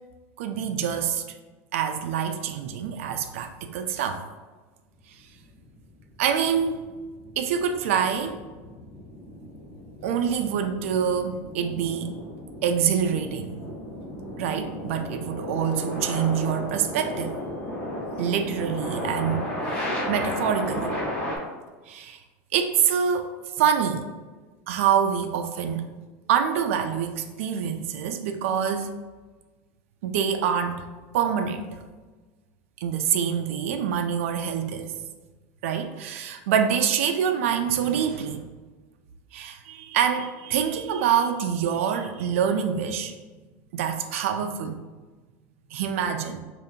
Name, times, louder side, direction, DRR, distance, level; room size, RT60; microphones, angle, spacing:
voice 1, 0.4-1.2 1.7-4.2 6.2-6.9 7.4-8.4 10.0-12.1 12.6-13.6 14.4-17.4 18.2-20.9 21.9-22.2 22.5-24.1 24.7-25.9 26.3-28.9 30.0-30.9 31.1-31.8 32.8-34.9 35.6-38.4 39.3-43.1 43.7-44.8 45.7-46.4, right 8 dB, 90° right, 6 dB, 0.3 m, -26 dB
sound 1, 5.3-21.4, left 1 dB, 15° left, 0.7 m, -34 dB
5.1 x 2.5 x 2.7 m, 1.3 s
supercardioid pair, 180°, 7 cm